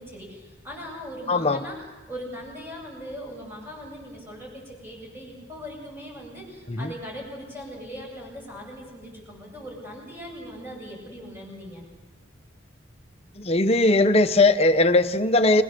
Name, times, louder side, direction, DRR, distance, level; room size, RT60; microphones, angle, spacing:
voice 1, 0.0-11.8, equal, 10° right, -1 dB, 7.8 m, -40 dB
voice 2, 1.3-1.6 6.7-6.9 13.4-15.6, left 2 dB, 30° left, 8 dB, 1.0 m, -19 dB
30.0 x 21.5 x 6.8 m, 1.2 s
head